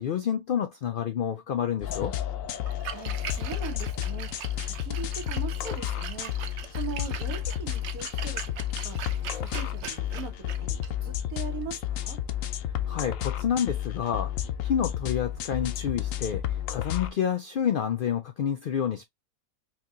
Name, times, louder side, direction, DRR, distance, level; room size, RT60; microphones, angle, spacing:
voice 1, 0.0-2.1 12.9-14.3 14.6-16.4 16.7-19.0, left 8 dB, 90° left, 0.4 m, -28 dB
sound 1, 1.8-17.1, left 11 dB, 75° left, 1.0 m, -32 dB
Splash splatter, 2.5-12.5, right 8 dB, 65° right, 0.8 m, -42 dB
voice 2, 2.9-6.3 6.7-8.4 8.8-9.0 9.3-12.2, right 6 dB, 85° right, 1.5 m, -40 dB
4.5 x 2.8 x 2.4 m
omnidirectional pair, 1.5 m